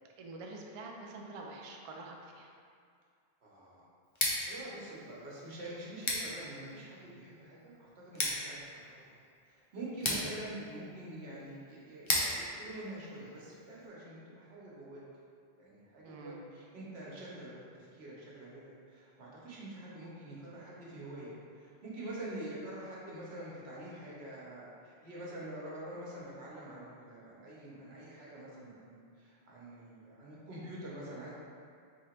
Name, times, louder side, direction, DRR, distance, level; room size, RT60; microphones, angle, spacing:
voice 1, 0.2-2.5 10.0-10.3 16.0-16.4, right 3 dB, 60° right, 0 dB, 0.3 m, -46 dB
voice 2, 3.4-3.8 4.3-9.0 9.4-15.0 15.6-31.3, right 1 dB, 75° right, -6 dB, 1.2 m, -46 dB
Scissors, 4.0-13.9, left 1 dB, 35° left, 0.5 m, -39 dB
3.5 x 2.9 x 4.4 m, 2.2 s
omnidirectional pair, 1.1 m